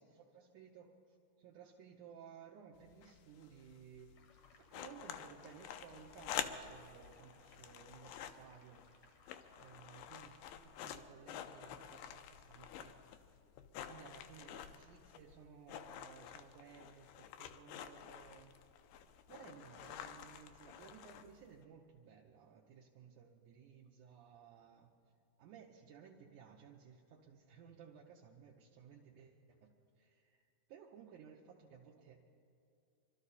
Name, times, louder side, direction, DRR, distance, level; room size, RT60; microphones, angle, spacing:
voice 1, 0.0-4.1 4.5-8.9 9.6-13.0 13.9-18.6 19.3-24.9 25.4-29.7 30.0-32.2, right 7 dB, 75° right, -1 dB, 1.9 m, -58 dB
sound 1, 2.8-21.6, left 9 dB, 80° left, 2.2 m, -49 dB
sound 2, 4.1-9.7, left 5 dB, 60° left, 1.8 m, -67 dB
25.0 x 13.0 x 4.1 m, 2.5 s
omnidirectional pair, 4.5 m